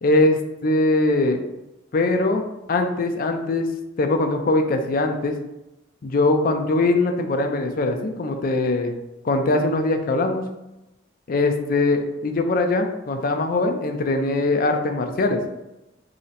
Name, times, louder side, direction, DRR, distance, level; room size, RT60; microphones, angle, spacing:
voice 1, 0.0-1.4 1.9-2.4 2.7-3.7 4.0-5.3 6.0-8.9 9.2-10.4 11.3-15.4, left 2 dB, 45° left, 5 dB, 0.4 m, -21 dB
3.8 x 2.0 x 4.1 m, 0.95 s
head